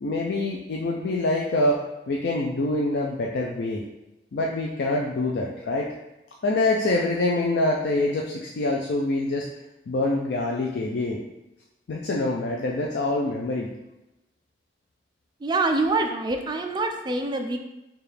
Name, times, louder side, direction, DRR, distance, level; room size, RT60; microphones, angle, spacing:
voice 1, 0.0-1.8 2.1-3.8 4.3-5.9 6.4-9.5 9.9-11.2 11.9-13.7, left 2 dB, 70° left, -1 dB, 0.4 m, -25 dB
voice 2, 15.4-17.6, right 2 dB, 25° right, 5 dB, 0.3 m, -25 dB
4.7 x 2.3 x 3.2 m, 0.96 s
head